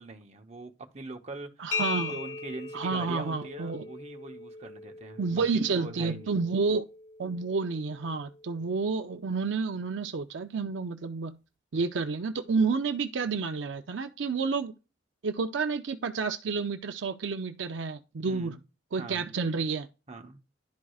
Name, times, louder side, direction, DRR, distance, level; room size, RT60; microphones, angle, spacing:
voice 1, 0.0-1.8 2.1-5.5 5.7-6.4 18.3-18.6 19.0-19.3 20.1-20.4, right 2 dB, 35° right, 0.9 m, -42 dB
voice 2, 1.6-2.1 2.7-3.8 5.2-6.9 7.2-11.4 11.7-14.7 15.2-18.6 18.9-19.9, right 4 dB, 75° right, 0.5 m, -30 dB
sound 1, 1.7-9.3, left 5 dB, 65° left, 1.8 m, -40 dB
11.5 x 4.7 x 2.4 m
head